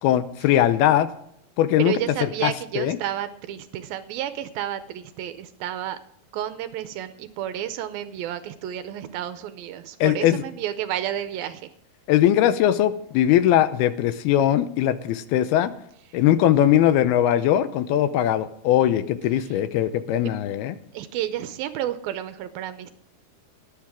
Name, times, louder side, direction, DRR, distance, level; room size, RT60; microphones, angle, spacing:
voice 1, 0.0-1.1 1.6-1.9 2.2-3.0 10.0-10.4 12.1-15.7 16.1-20.8, left 11 dB, 85° left, 13 dB, 2.6 m, -20 dB
voice 2, 1.8-6.0 6.3-11.7 20.9-22.9, right 11 dB, 80° right, 11 dB, 2.3 m, -31 dB
17.5 x 10.5 x 3.6 m, 0.71 s
omnidirectional pair, 4.6 m